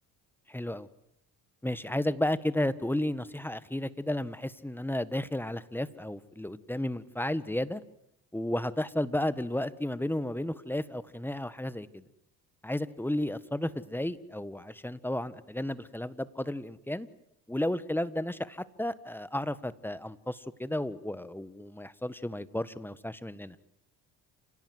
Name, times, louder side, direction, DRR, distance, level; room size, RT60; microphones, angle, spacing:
voice 1, 0.5-0.9 1.6-7.8 8.3-12.0 12.6-17.1 17.5-23.5, left 1 dB, 5° left, 14 dB, 1.5 m, -33 dB
29.0 x 17.5 x 9.6 m, 0.77 s
supercardioid pair, 80°, 36 cm